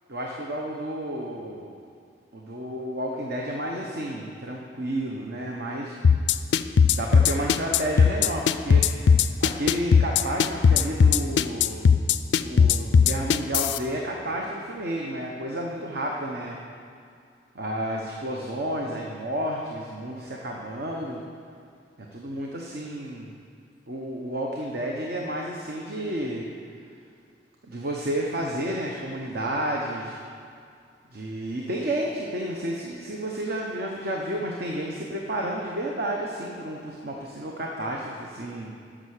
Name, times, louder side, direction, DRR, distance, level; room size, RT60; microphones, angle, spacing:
voice 1, 0.1-1.7 2.3-6.0 6.9-9.0 9.4-12.0 12.4-16.6 17.5-21.2 22.1-23.3 23.9-26.5 27.6-30.2 31.1-38.7, right 1 dB, 60° right, -1 dB, 1.0 m, -31 dB
sound 1, 6.0-13.8, left 6 dB, 80° left, 0.4 m, -18 dB
10.0 x 6.2 x 6.6 m, 2.3 s
head